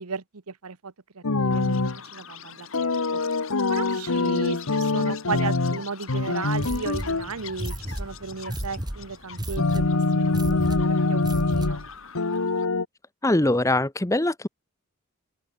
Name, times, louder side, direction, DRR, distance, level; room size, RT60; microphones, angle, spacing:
voice 1, 0.0-1.8 2.1-3.2 3.7-9.8 10.1-11.2 11.5-11.8, right 4 dB, 85° right, 1.1 m, -35 dB
sound 1, 1.2-2.0 2.7-5.8 6.1-7.3 9.6-11.8 12.2-12.9, left 3 dB, 90° left, 1.2 m, -24 dB
Chirp tweet, 1.5-12.7, left 7 dB, 65° left, 4.0 m, -44 dB
sound 2, 6.5-12.0, right 1 dB, 20° right, 2.1 m, -34 dB
voice 2, 13.2-14.5, left 1 dB, 15° left, 0.9 m, -22 dB
open air
head